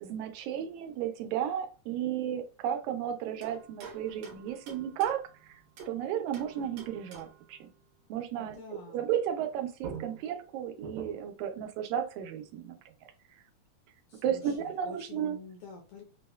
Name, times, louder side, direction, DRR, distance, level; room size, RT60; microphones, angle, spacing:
voice 1, 0.0-7.7 8.1-8.6 8.9-12.8 13.3-13.4 14.2-15.4, right 10 dB, 85° right, 6 dB, 1.9 m, -34 dB
sound 1, 3.4-6.0 6.3-7.5 9.4-9.5 9.8-11.4, right 5 dB, 70° right, 1.9 m, -47 dB
voice 2, 8.4-9.1 14.1-16.0, left 4 dB, 80° left, 1 dB, 1.3 m, -47 dB
5.2 x 2.1 x 2.2 m, 0.34 s
omnidirectional pair, 3.3 m